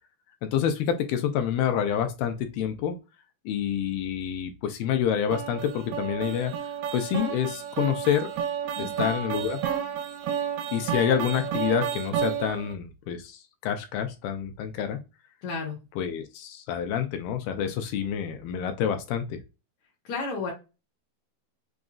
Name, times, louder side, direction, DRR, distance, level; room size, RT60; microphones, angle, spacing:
voice 1, 0.4-3.0 3.5-6.5 6.9-8.3 8.8-9.6 10.7-15.0 16.0-19.4, left 9 dB, 80° left, 8 dB, 2.2 m, -28 dB
sound 1, 5.3-12.7, right 8 dB, 85° right, 2.6 m, -31 dB
voice 2, 15.4-15.8 20.1-20.5, left 4 dB, 65° left, -1 dB, 1.9 m, -31 dB
6.0 x 2.5 x 2.3 m, 0.27 s
omnidirectional pair, 4.6 m